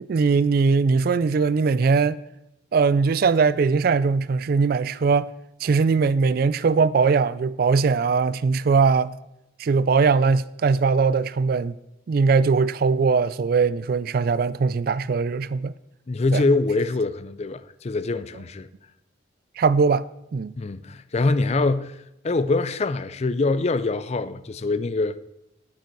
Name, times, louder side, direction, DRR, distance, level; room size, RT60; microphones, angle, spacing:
voice 1, 0.0-2.2 2.7-5.3 5.6-9.1 9.6-11.7 12.1-15.7 16.3-16.4 19.6-20.0 20.3-20.5, right 5 dB, 50° right, 0.3 m, -20 dB
voice 2, 16.1-18.7 20.6-22.0 22.2-25.2, left 3 dB, 35° left, 0.4 m, -24 dB
9.5 x 8.5 x 4.6 m
head